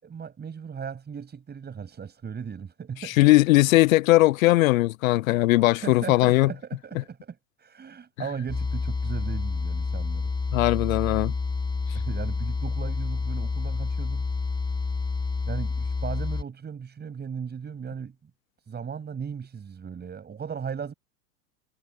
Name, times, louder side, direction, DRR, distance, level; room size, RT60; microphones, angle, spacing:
voice 1, 0.0-3.3 5.7-10.3 11.9-14.3 15.5-18.3 18.7-20.9, right 6 dB, 20° right, 7.8 m, -37 dB
voice 2, 3.2-6.5 10.5-11.3, left 19 dB, 60° left, 0.8 m, -19 dB
sound 1, 8.5-16.4, left 4 dB, 10° left, 1.5 m, -29 dB
hypercardioid pair, 100°, 48 cm